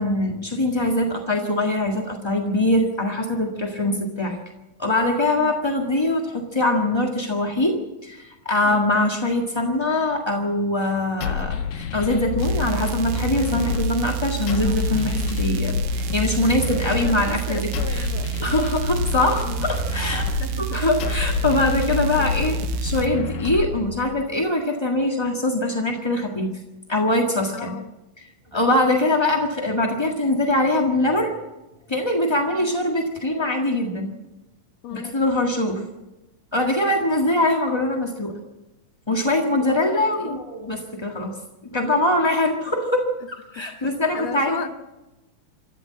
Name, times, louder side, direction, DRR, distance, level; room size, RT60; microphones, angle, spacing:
voice 1, 0.0-4.4 4.8-18.1 18.4-20.2 20.6-26.5 26.9-27.8 28.2-28.3 28.5-31.3 31.9-34.1 34.9-35.8 36.5-38.4 39.1-41.3 41.7-44.7, left 1 dB, 20° left, 1 dB, 0.6 m, -23 dB
sound 1, 11.2-24.2, left 8 dB, 85° left, 2.7 m, -28 dB
sound 2, 12.4-23.0, right 19 dB, 80° right, 1.3 m, -29 dB
voice 2, 16.6-18.5 19.4-19.7 20.1-20.8 21.8-22.4 27.5-27.9 28.5-28.8 32.5-32.7 34.8-35.1 39.6-40.4 43.6-43.7 44.1-44.7, left 9 dB, 65° left, 9 dB, 1.8 m, -36 dB
26.5 x 12.5 x 7.6 m, 1.0 s
omnidirectional pair, 3.8 m